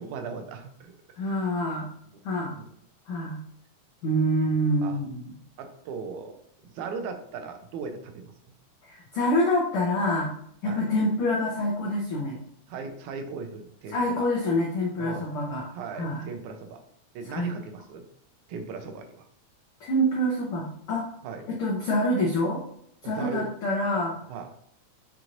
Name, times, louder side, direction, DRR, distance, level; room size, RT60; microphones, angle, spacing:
voice 1, 0.0-1.4 2.5-2.6 4.8-5.0 5.6-6.4 6.6-8.3 10.6-10.8 12.7-14.3 15.0-15.3 15.7-16.8 17.2-18.1 18.5-19.3 21.2-21.4 23.0-23.5 24.3-24.5, right 5 dB, 85° right, 6 dB, 2.0 m, -37 dB
voice 2, 1.2-1.9 2.2-2.6 3.1-3.4 4.0-5.3 8.8-10.3 10.6-12.4 13.9-15.7 15.9-16.2 17.3-17.5 19.8-21.1 21.5-22.6 23.0-24.1, equal, 85° left, -3 dB, 1.2 m, -26 dB
5.9 x 2.9 x 2.5 m, 0.69 s
omnidirectional pair, 3.4 m